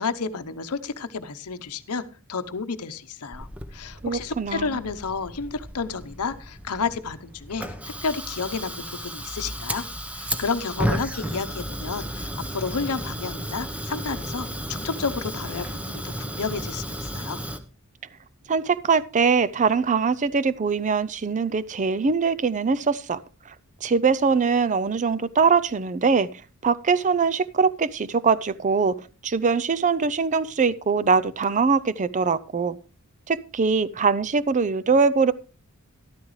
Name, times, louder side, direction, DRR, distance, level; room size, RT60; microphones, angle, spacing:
voice 1, 0.0-2.0 2.3-7.7 8.0-9.9 10.1-17.4, left 5 dB, 90° left, 0.9 m, -31 dB
Fire, 3.3-17.6, equal, 5° right, 0.9 m, -33 dB
voice 2, 4.0-4.7 18.5-23.2 23.8-26.3 26.6-28.9 29.2-32.8 33.3-35.3, right 5 dB, 35° right, 0.5 m, -22 dB
13.5 x 12.0 x 3.2 m
head